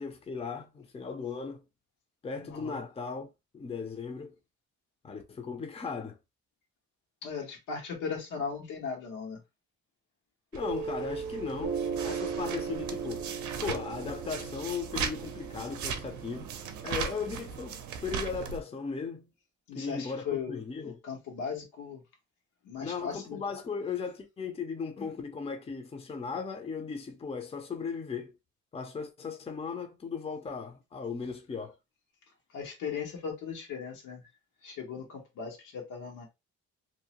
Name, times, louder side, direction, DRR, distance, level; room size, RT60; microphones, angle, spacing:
voice 1, 0.0-1.6 2.2-3.3 3.5-4.4 5.0-6.2 10.5-11.8 12.0-13.3 13.6-16.5 16.8-19.3 19.8-21.0 22.8-28.3 28.7-31.7, left 5 dB, 20° left, 0.5 m, -37 dB
voice 2, 7.2-9.4 19.7-22.0 22.6-23.4 32.5-34.2 34.6-36.3, left 6 dB, 85° left, 1.1 m, -38 dB
sound 1, 10.5-18.6, right 6 dB, 75° right, 0.6 m, -38 dB
Piano, 10.6-17.7, right 6 dB, 35° right, 0.6 m, -38 dB
2.7 x 2.0 x 2.9 m
cardioid pair, 90°, 30 cm